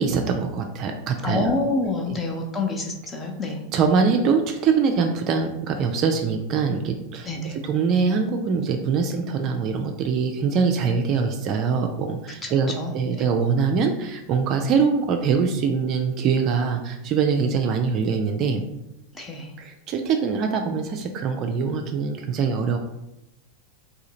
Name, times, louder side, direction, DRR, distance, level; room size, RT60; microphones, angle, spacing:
voice 1, 0.0-1.5 3.7-18.6 19.6-22.8, right 5 dB, 35° right, 4 dB, 0.4 m, -23 dB
voice 2, 1.2-3.6 7.2-7.6 12.4-13.2 19.1-19.5, left 3 dB, 15° left, 1 dB, 0.8 m, -28 dB
3.7 x 2.7 x 4.1 m, 0.88 s
figure-of-eight pair, 90°, 0 cm